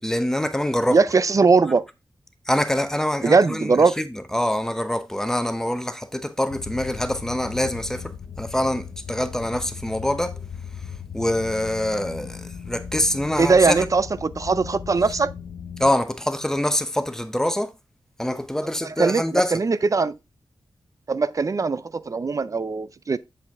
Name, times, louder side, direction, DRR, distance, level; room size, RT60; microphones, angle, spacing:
voice 1, 0.0-1.1 2.5-10.3 11.1-13.9 15.1-15.2 15.8-17.7 18.2-19.6, left 1 dB, 5° left, 0.8 m, -25 dB
voice 2, 0.9-1.8 3.2-4.0 13.4-15.3 18.8-20.2 21.1-23.2, right 4 dB, 40° right, 0.4 m, -20 dB
sound 1, 6.5-15.9, left 6 dB, 70° left, 0.8 m, -37 dB
7.8 x 5.0 x 3.4 m
wide cardioid pair, 95°, 8 cm